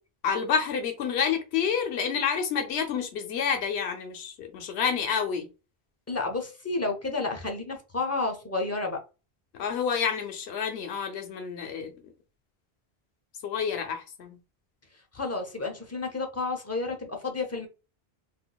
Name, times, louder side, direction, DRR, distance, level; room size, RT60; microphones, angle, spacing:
voice 1, 0.2-5.5 9.5-11.9 13.4-14.4, left 7 dB, 85° left, 1.0 m, -29 dB
voice 2, 6.1-9.0 15.1-17.7, left 3 dB, 15° left, 0.6 m, -31 dB
3.9 x 2.6 x 2.3 m
omnidirectional pair, 1.1 m